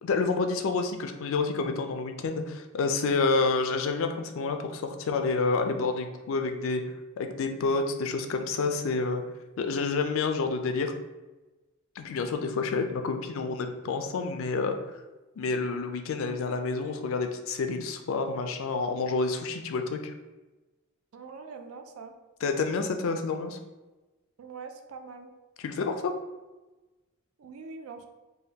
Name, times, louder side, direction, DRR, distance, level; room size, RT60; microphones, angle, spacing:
voice 1, 0.0-6.8 7.2-9.2 9.6-10.9 12.0-14.8 15.4-20.1 22.4-23.6 25.6-26.1, left 4 dB, 65° left, 6 dB, 0.3 m, -29 dB
voice 2, 21.1-22.1 24.4-25.3 27.4-28.1, right 4 dB, 80° right, 6 dB, 0.4 m, -43 dB
3.5 x 2.2 x 2.8 m, 1.1 s
head